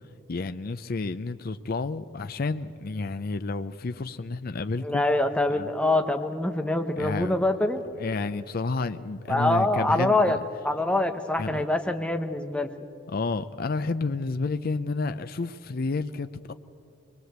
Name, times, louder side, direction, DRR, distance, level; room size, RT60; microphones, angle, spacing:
voice 1, 0.3-5.0 5.5-5.7 7.0-7.5 8.0-10.4 11.4-11.6 13.1-16.5, left 3 dB, 50° left, 10 dB, 0.5 m, -30 dB
voice 2, 4.8-7.8 9.3-10.4 10.6-12.7, left 2 dB, 5° left, 5 dB, 1.1 m, -25 dB
22.5 x 21.0 x 8.0 m, 2.4 s
head